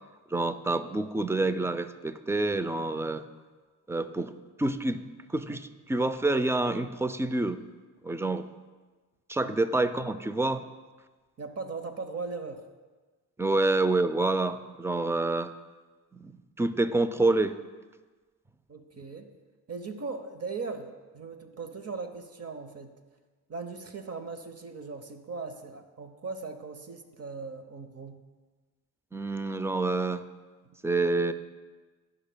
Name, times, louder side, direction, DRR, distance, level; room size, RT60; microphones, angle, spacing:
voice 1, 0.3-3.2 3.9-4.3 4.6-5.0 5.3-7.6 8.0-8.5 9.3-10.6 13.4-15.5 16.1-17.6 29.1-30.3 30.8-31.3, right 2 dB, 5° right, 12 dB, 0.4 m, -27 dB
voice 2, 11.4-12.6 18.7-19.3 19.7-23.0 23.5-28.2, right 4 dB, 40° right, 7 dB, 0.8 m, -39 dB
13.0 x 5.5 x 2.2 m, 1.3 s
supercardioid pair, 55°, 38 cm